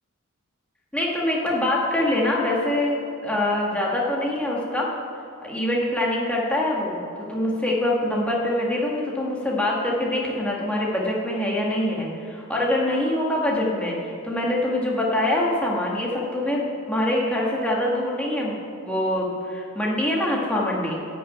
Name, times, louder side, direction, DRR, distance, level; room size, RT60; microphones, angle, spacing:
voice 1, 0.9-4.9 5.4-7.0 7.3-21.0, left 1 dB, 5° left, -3 dB, 1.7 m, -24 dB
11.0 x 6.1 x 8.7 m, 2.6 s
head